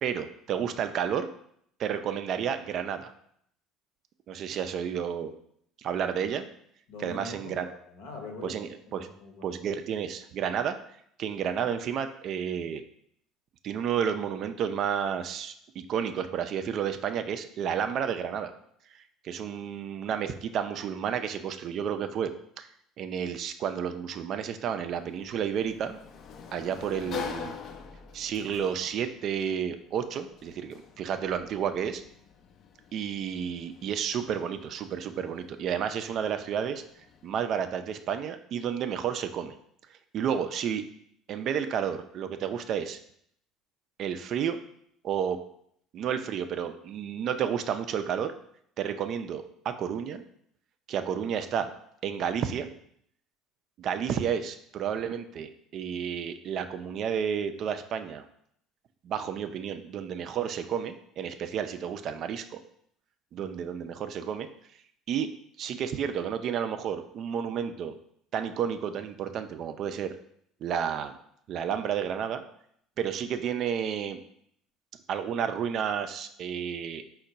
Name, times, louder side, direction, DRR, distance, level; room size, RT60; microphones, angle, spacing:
voice 1, 0.0-1.3 1.8-3.1 4.3-5.3 5.8-6.5 7.0-7.7 8.4-9.1 9.4-10.8 11.2-12.8 13.6-18.5 19.2-22.3 22.6-22.7 23.0-26.0 26.5-27.5 28.1-32.0 32.9-36.8 37.2-39.5 40.1-40.8 41.3-43.0 44.0-44.6 45.0-45.4 45.9-48.3 48.8-50.2 50.9-51.7 52.0-52.7 53.8-58.2 59.0-62.6 63.3-64.5 65.1-65.3 65.6-67.9 68.3-70.1 70.6-71.2 71.5-72.4 73.0-74.2 75.1-77.0, right 8 dB, 50° right, 8 dB, 0.3 m, -31 dB
voice 2, 6.9-8.6 8.9-9.5, left 2 dB, 65° left, 2 dB, 0.8 m, -43 dB
Sliding door, 24.8-37.4, left 7 dB, 50° left, 0.3 m, -45 dB
4.3 x 2.2 x 3.8 m, 0.69 s
figure-of-eight pair, 60°, 0 cm